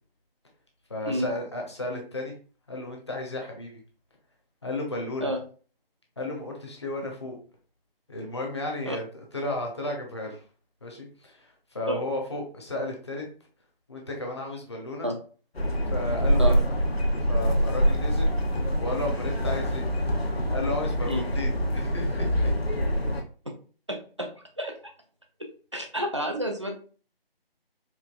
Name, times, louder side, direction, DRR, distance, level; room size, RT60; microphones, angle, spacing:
voice 1, 0.9-2.3 2.7-3.8 4.6-5.3 6.2-7.4 8.1-9.0 9.3-10.4 10.8-13.2 13.9-15.1 15.9-16.6 17.3-18.5 18.8-19.9 20.5-22.3, left 2 dB, 30° left, 0 dB, 0.7 m, -33 dB
sound 1, 15.5-23.2, equal, 90° left, 0.9 m, -25 dB
voice 2, 23.9-24.7 25.7-26.7, equal, 30° right, 2 dB, 0.4 m, -30 dB
4.5 x 2.4 x 2.4 m, 0.40 s
figure-of-eight pair, 160°, 30 cm